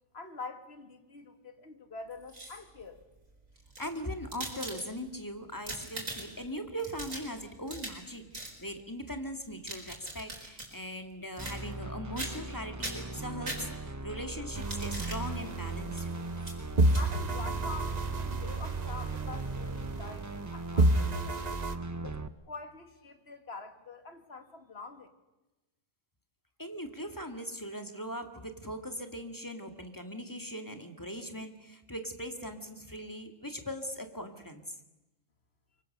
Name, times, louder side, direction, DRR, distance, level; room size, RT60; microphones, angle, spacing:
voice 1, 0.1-3.0 16.9-21.6 22.0-25.1, left 4 dB, 50° left, 7 dB, 2.3 m, -46 dB
sound 1, 2.1-2.8 3.6-5.2 5.5-6.5 6.8-8.1 8.3-8.6 9.4-10.7 11.4-11.9 12.2-12.5 12.8-14.0 14.5-15.2 15.9-16.1 16.4-16.6 16.9-17.0, right 2 dB, 85° right, 4.8 m, -41 dB
voice 2, 3.8-16.1 26.6-34.8, equal, 15° left, 6 dB, 2.0 m, -40 dB
sound 2, 11.4-22.3, right 2 dB, 20° right, 0.6 m, -39 dB
sound 3, 14.5-16.4 16.8-20.5 20.8-21.7, right 2 dB, 35° right, 1.1 m, -30 dB
24.5 x 23.5 x 6.7 m, 1.0 s
omnidirectional pair, 1.4 m